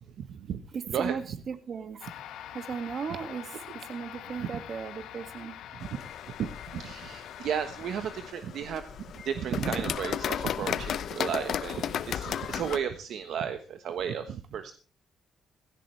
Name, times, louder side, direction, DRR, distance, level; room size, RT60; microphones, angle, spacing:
voice 1, 0.2-0.6 0.9-1.1 4.4-4.5 6.4-8.8 9.2-14.7, right 8 dB, 70° right, 8 dB, 1.2 m, -33 dB
voice 2, 0.7-2.0 2.5-5.5, right 6 dB, 50° right, 10 dB, 2.1 m, -36 dB
sound 1, 2.0-8.3, left 11 dB, 85° left, 1.4 m, -44 dB
sound 2, 5.8-12.8, left 9 dB, 65° left, 0.8 m, -35 dB
16.0 x 15.5 x 3.3 m, 0.37 s
cardioid pair, 90°, 0 cm